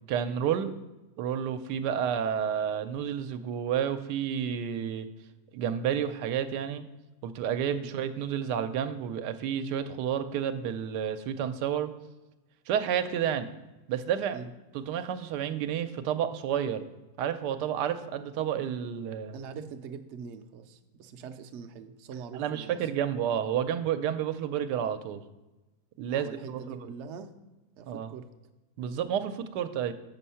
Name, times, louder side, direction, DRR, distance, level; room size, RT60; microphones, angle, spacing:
voice 1, 0.1-0.7 1.2-5.1 5.5-6.9 7.2-11.9 12.7-13.5 13.9-14.4 14.7-16.8 17.2-19.4 22.3-25.2 26.0-26.9 27.9-28.1 28.8-29.9, right 9 dB, 85° right, 9 dB, 1.2 m, -30 dB
voice 2, 19.3-22.8 26.1-27.3 27.8-28.3, right 6 dB, 65° right, 7 dB, 0.7 m, -43 dB
7.4 x 5.3 x 5.6 m, 1.1 s
omnidirectional pair, 1.8 m